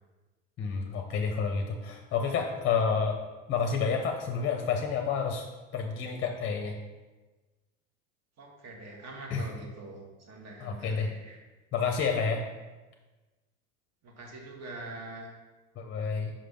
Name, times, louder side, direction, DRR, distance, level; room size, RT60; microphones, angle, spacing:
voice 1, 0.6-3.2 3.5-5.5 5.7-6.8 9.3-9.5 10.6-11.1 11.7-12.4 15.8-16.3, left 5 dB, 30° left, 3 dB, 0.7 m, -29 dB
voice 2, 8.4-11.4 14.0-15.3, right 2 dB, 40° right, 0 dB, 1.5 m, -44 dB
5.7 x 3.3 x 5.3 m, 1.2 s
hypercardioid pair, 80°, 39 cm